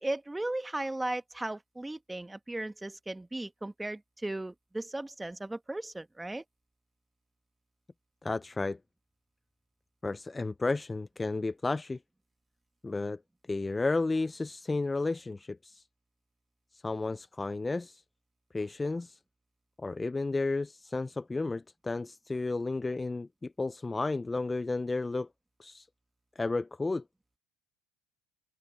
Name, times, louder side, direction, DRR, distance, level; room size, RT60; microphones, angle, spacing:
voice 1, 0.0-6.4, right 2 dB, 5° right, 1.1 m, -36 dB
voice 2, 8.2-8.8 10.0-12.0 12.8-13.2 13.5-15.8 16.7-18.0 18.5-19.2 19.8-25.3 25.6-25.9 26.4-27.0, left 3 dB, 15° left, 0.3 m, -32 dB
open air
supercardioid pair, 120°, 0 cm